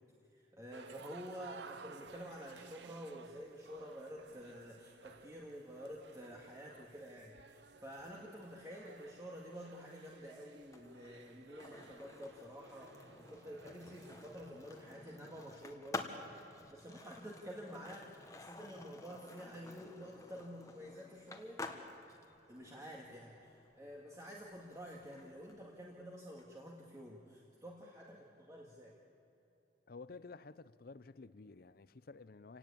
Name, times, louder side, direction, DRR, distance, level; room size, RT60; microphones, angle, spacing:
voice 1, 0.3-16.4 16.7-21.6 22.5-28.9, equal, 20° right, 2.1 m, -50 dB
sound 1, 0.7-15.2, right 5 dB, 80° right, 0.6 m, -57 dB
Skateboard, 10.6-26.5, left 2 dB, 20° left, 1.5 m, -51 dB
voice 2, 29.9-32.6, left 4 dB, 60° left, 0.6 m, -52 dB
28.0 x 18.0 x 8.7 m
head